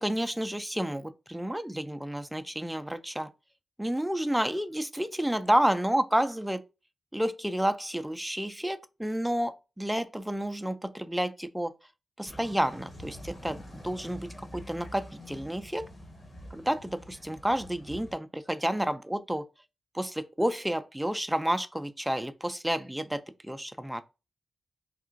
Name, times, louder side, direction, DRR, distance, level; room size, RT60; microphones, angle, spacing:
voice 1, 0.0-3.3 3.8-6.6 7.1-11.7 12.2-15.8 16.5-19.4 19.9-24.0, right 1 dB, 5° right, 0.5 m, -30 dB
sound 1, 12.3-18.1, equal, 45° left, 1.4 m, -46 dB
3.7 x 2.4 x 2.5 m
supercardioid pair, 40°, 0 cm